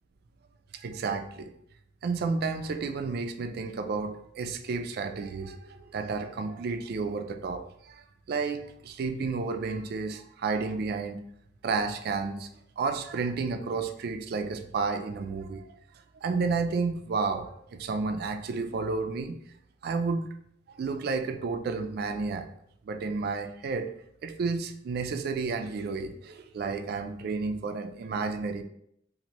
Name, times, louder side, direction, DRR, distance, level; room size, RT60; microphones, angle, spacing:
voice 1, 0.7-1.5 2.0-11.2 11.6-12.5 12.8-15.6 16.2-19.4 19.8-20.2 20.7-22.5 22.9-23.9 24.2-28.6, right 4 dB, 55° right, 7 dB, 0.3 m, -31 dB
3.0 x 2.5 x 2.8 m, 0.71 s
head